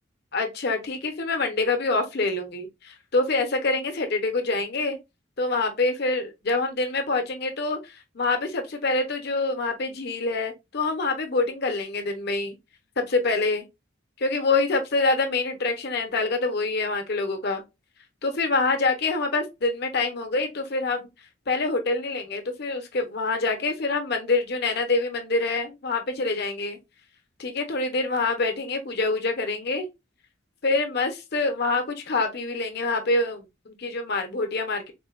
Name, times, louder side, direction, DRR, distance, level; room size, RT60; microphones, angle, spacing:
voice 1, 0.3-5.0 5.4-12.5 13.0-13.6 14.2-17.6 18.2-21.1 21.5-26.8 27.4-29.9 30.6-34.9, left 3 dB, 50° left, 0.7 m, -26 dB
3.7 x 2.1 x 2.4 m
head